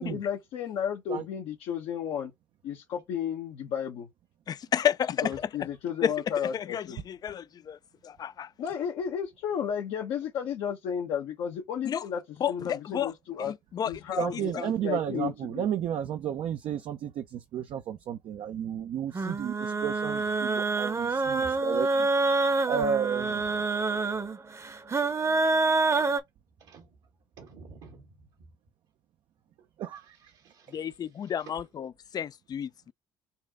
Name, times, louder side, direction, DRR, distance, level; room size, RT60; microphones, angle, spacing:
voice 1, 0.0-2.3 2.6-4.1 5.2-7.0 8.6-12.2 12.5-13.5 13.9-15.7, left 8 dB, 70° left, 0.9 m, -33 dB
voice 2, 4.5-5.5 6.0-6.1 6.4-8.5 11.8-12.0 12.4-13.1 13.4-13.9 14.3-14.4 30.7-32.9, left 9 dB, 45° left, 0.4 m, -31 dB
voice 3, 14.2-22.1 22.7-23.5 29.8-30.2, right 8 dB, 60° right, 0.6 m, -32 dB
sound 1, 19.1-26.2, right 3 dB, 30° right, 0.8 m, -27 dB
voice 4, 19.9-20.3 20.9-21.6 25.5-26.2 26.6-26.9 27.4-28.5 29.9-31.6, right 4 dB, 80° right, 1.6 m, -52 dB
4.1 x 2.4 x 3.5 m
hypercardioid pair, 60°, 10 cm